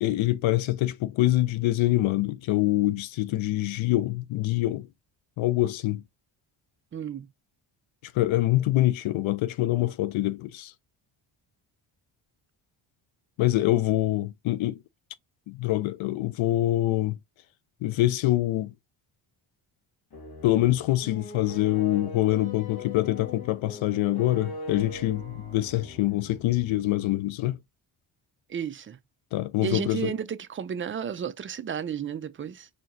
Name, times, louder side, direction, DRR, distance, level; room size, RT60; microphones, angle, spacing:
voice 1, 0.0-4.9 5.4-6.0 8.1-10.7 13.4-14.8 15.5-17.2 17.8-18.7 20.4-27.6 29.3-30.1, left 16 dB, 75° left, 0.6 m, -25 dB
voice 2, 6.9-7.3 28.5-29.0 29.6-32.7, right 8 dB, 25° right, 0.4 m, -32 dB
sound 1, 20.1-27.1, left 2 dB, 50° left, 1.2 m, -41 dB
4.3 x 2.8 x 2.5 m
cardioid pair, 100°, 48 cm